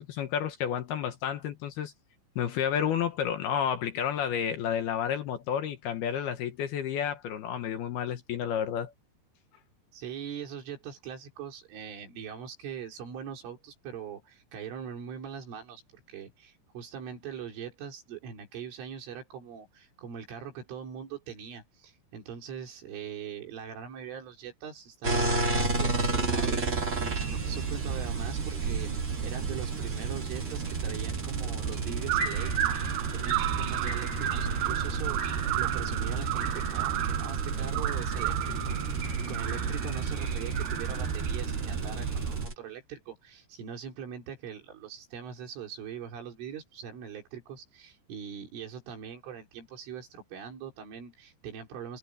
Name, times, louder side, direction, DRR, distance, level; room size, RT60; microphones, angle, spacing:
voice 1, 0.0-1.9 2.4-8.9, left 9 dB, 70° left, 2.7 m, -31 dB
voice 2, 9.9-52.0, right 7 dB, 85° right, 6.9 m, -42 dB
sound 1, 25.0-42.5, right 1 dB, 20° right, 2.1 m, -35 dB
sound 2, 25.5-42.5, right 7 dB, 60° right, 6.2 m, -31 dB
omnidirectional pair, 5.5 m